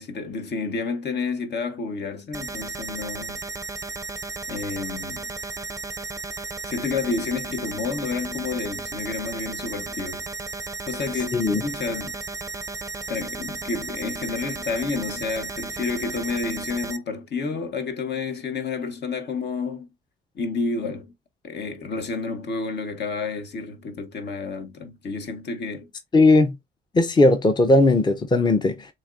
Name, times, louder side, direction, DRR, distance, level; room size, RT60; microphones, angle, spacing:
voice 1, 0.0-3.4 4.5-5.2 6.6-10.2 10.9-12.2 13.1-19.9 20.3-21.1 21.4-25.9, left 4 dB, 60° left, 1.2 m, -30 dB
sound 1, 2.3-17.0, right 3 dB, 15° right, 0.5 m, -34 dB
voice 2, 26.1-26.6 26.9-28.9, left 2 dB, 20° left, 0.7 m, -18 dB
7.0 x 2.9 x 2.5 m
cardioid pair, 90°, 20 cm